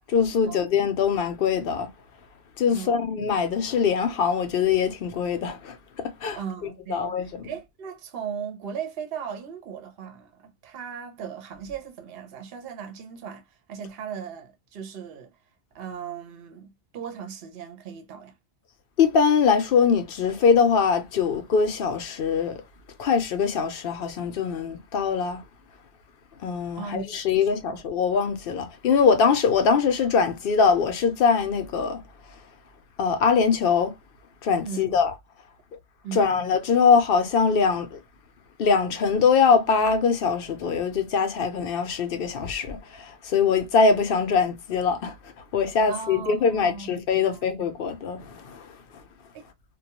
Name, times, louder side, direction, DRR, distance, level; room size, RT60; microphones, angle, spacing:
voice 1, 0.1-1.9 2.6-6.4 6.9-7.5 19.0-22.6 23.0-25.4 26.4-32.0 33.0-33.9 34.4-35.1 36.1-38.0 38.6-45.2 45.5-48.7, left 5 dB, 60° left, 0.7 m, -22 dB
voice 2, 2.7-3.1 6.3-7.2 7.4-15.3 15.7-18.3 26.8-27.8 34.6-35.0 36.0-36.4 45.9-46.9 47.3-47.7 49.3-49.4, right 7 dB, 60° right, 0.8 m, -37 dB
2.3 x 2.2 x 2.8 m
omnidirectional pair, 1.2 m